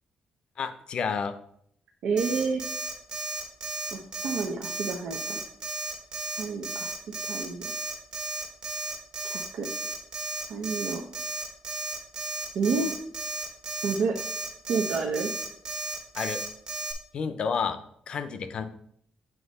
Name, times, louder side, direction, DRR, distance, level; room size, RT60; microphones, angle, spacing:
voice 1, 0.6-1.3 16.2-16.4 17.1-17.8 18.1-18.6, left 6 dB, 45° left, 10 dB, 0.5 m, -30 dB
voice 2, 2.0-2.6 3.9-5.4 6.4-6.9 7.2-7.6 9.2-9.7 10.5-11.0 12.5-12.9 13.8-14.1 14.7-15.3, right 4 dB, 85° right, 0 dB, 0.9 m, -29 dB
Alarm, 2.2-16.9, right 3 dB, 35° right, 1.2 m, -34 dB
7.9 x 3.1 x 5.3 m, 0.67 s
cardioid pair, 180°, 2 cm